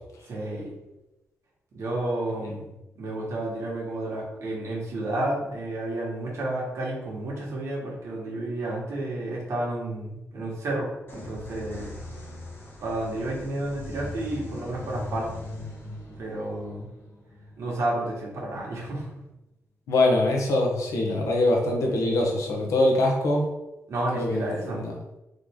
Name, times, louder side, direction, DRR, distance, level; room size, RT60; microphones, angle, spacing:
voice 1, 0.2-0.7 1.7-12.1 12.8-15.3 16.2-16.9 17.6-19.1 23.9-24.8, right 1 dB, 70° right, -4 dB, 1.5 m, -31 dB
sound 1, 11.1-18.6, left 2 dB, 45° left, 1.1 m, -40 dB
voice 2, 19.9-23.4 24.1-24.5 24.7-24.9, left 2 dB, 90° left, 0 dB, 1.0 m, -23 dB
3.9 x 3.2 x 3.7 m, 0.97 s
wide cardioid pair, 140°, 5 cm